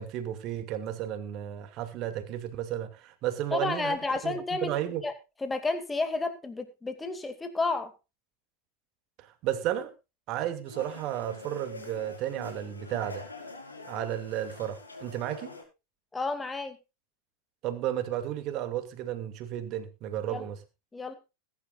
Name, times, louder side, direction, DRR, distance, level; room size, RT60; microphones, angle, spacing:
voice 1, 0.0-4.0 4.2-5.0 9.2-9.9 10.3-13.3 13.9-15.5 17.6-20.6, right 11 dB, 40° right, 2.5 m, -33 dB
voice 2, 3.5-4.7 5.0-5.1 5.4-7.9 16.1-16.8 20.3-20.5 20.9-21.1, left 3 dB, 10° left, 2.4 m, -31 dB
sound 1, 10.6-15.6, left 3 dB, 80° left, 5.0 m, -45 dB
21.0 x 11.0 x 2.5 m
figure-of-eight pair, 90°, 0 cm